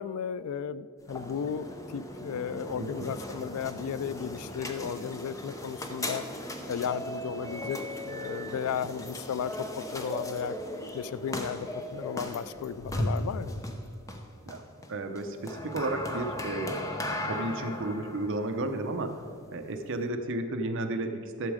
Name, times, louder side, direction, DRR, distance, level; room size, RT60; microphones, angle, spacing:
voice 1, 0.0-6.2 6.7-7.8 8.0-10.5 10.9-13.6, left 7 dB, 85° left, 17 dB, 0.3 m, -35 dB
sound 1, 1.0-20.1, left 1 dB, 15° left, 0.8 m, -37 dB
voice 2, 2.8-3.1 14.5-14.6 14.9-19.2 19.5-21.5, right 2 dB, 60° right, 6 dB, 0.7 m, -33 dB
12.0 x 7.1 x 4.9 m, 2.3 s
head